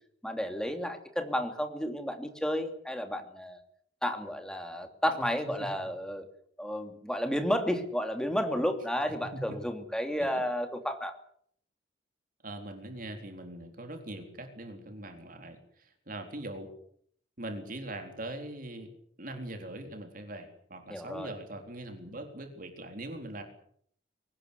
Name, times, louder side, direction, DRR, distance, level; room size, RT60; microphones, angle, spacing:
voice 1, 0.2-3.6 4.0-6.2 6.6-11.1 20.9-21.3, equal, 5° left, 5 dB, 2.9 m, -32 dB
voice 2, 12.4-16.7 17.4-18.9 19.2-23.4, right 1 dB, 50° right, 5 dB, 4.1 m, -41 dB
24.0 x 19.5 x 8.3 m, 0.65 s
head